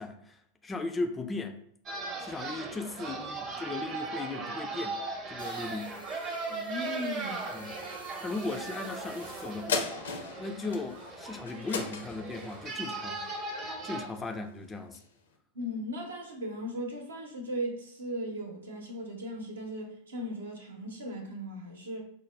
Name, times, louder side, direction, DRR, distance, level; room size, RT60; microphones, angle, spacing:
voice 1, 0.0-1.6 2.2-5.0 5.3-5.9 7.5-7.7 8.2-10.0 10.4-13.2 13.8-15.0, left 3 dB, 15° left, 5 dB, 0.3 m, -37 dB
sound 1, 1.9-14.1, right 3 dB, 30° right, 0.7 m, -38 dB
sound 2, 5.4-9.8, equal, 90° left, 1.0 m, -50 dB
voice 2, 6.5-7.7 15.5-22.0, equal, 70° right, 1 dB, 0.8 m, -37 dB
sound 3, 9.7-14.4 14.9-15.0, left 5 dB, 65° left, 0.5 m, -37 dB
4.9 x 2.1 x 3.2 m, 0.67 s
figure-of-eight pair, 90°, 0 cm